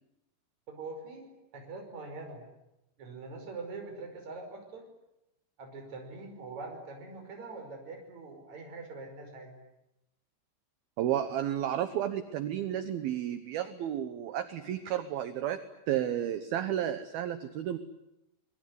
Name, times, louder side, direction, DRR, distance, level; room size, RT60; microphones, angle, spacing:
voice 1, 0.7-2.4 3.0-4.8 5.6-9.6, right 3 dB, 35° right, 3 dB, 6.5 m, -43 dB
voice 2, 11.0-15.6 15.9-17.8, right 11 dB, 70° right, 10 dB, 2.5 m, -32 dB
25.5 x 22.0 x 9.6 m, 0.88 s
omnidirectional pair, 5.5 m